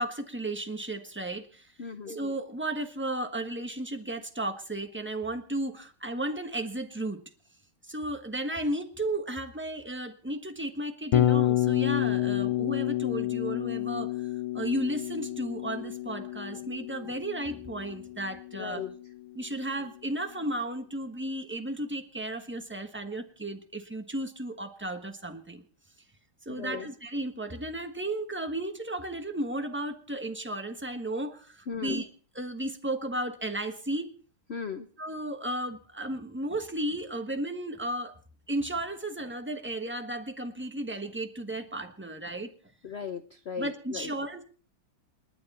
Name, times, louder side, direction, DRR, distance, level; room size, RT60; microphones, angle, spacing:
voice 1, 0.0-1.7 2.1-7.2 7.9-14.3 14.5-18.8 19.3-25.6 26.4-32.1 32.3-34.1 35.0-38.2 38.5-42.5 43.6-44.4, right 1 dB, 10° right, 6 dB, 1.0 m, -34 dB
voice 2, 1.8-2.2 18.5-18.9 26.5-26.9 31.7-32.0 34.5-34.9 42.8-44.1, left 6 dB, 55° left, 10 dB, 0.7 m, -37 dB
Bass guitar, 11.1-19.2, left 14 dB, 90° left, 2.0 m, -29 dB
29.0 x 9.7 x 4.3 m, 0.42 s
omnidirectional pair, 2.2 m